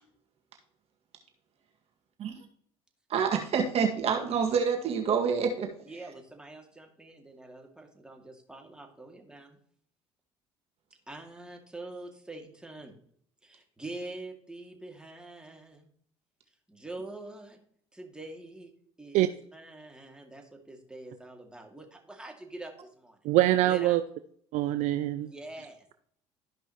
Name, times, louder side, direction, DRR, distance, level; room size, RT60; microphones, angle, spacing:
voice 1, 3.1-5.7, right 6 dB, 55° right, 2.0 m, -27 dB
voice 2, 5.9-9.6 11.1-12.9 13.4-15.9 16.7-17.6 17.9-18.7 19.0-23.2 23.6-24.0 25.2-25.9, right 2 dB, 5° right, 2.3 m, -45 dB
voice 3, 23.2-24.0 24.5-25.3, right 15 dB, 70° right, 0.5 m, -24 dB
13.5 x 5.4 x 3.0 m
supercardioid pair, 90°, 12 cm